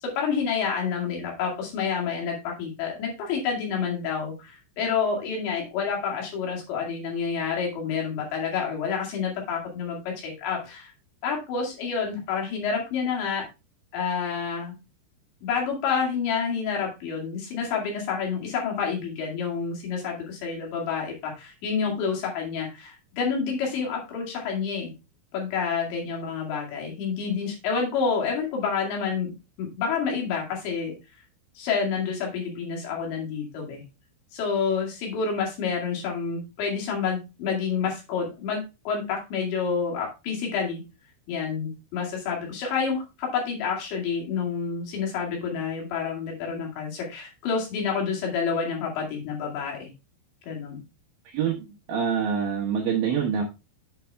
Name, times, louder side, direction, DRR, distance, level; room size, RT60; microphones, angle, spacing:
voice 1, 0.0-10.9 11.2-13.4 13.9-14.7 15.4-24.9 25.3-29.3 29.6-30.9 31.6-33.8 34.3-40.8 41.3-49.9 50.5-50.8, left 6 dB, 65° left, -1 dB, 4.2 m, -28 dB
voice 2, 51.3-53.4, right 7 dB, 70° right, 0 dB, 2.3 m, -26 dB
8.2 x 5.5 x 3.4 m, 0.27 s
omnidirectional pair, 5.8 m